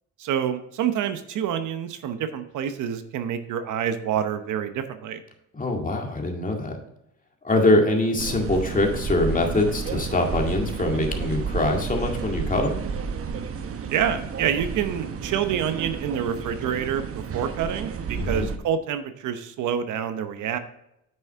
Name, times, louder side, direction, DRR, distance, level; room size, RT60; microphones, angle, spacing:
voice 1, 0.2-5.2 13.9-20.6, right 8 dB, 80° right, 9 dB, 0.9 m, -27 dB
voice 2, 5.5-6.8 7.4-12.8 18.2-18.4, left 2 dB, 25° left, 2 dB, 2.1 m, -23 dB
sound 1, 8.2-18.6, right 6 dB, 50° right, 1.0 m, -31 dB
9.0 x 6.4 x 3.6 m, 0.81 s
cardioid pair, 90°, 30 cm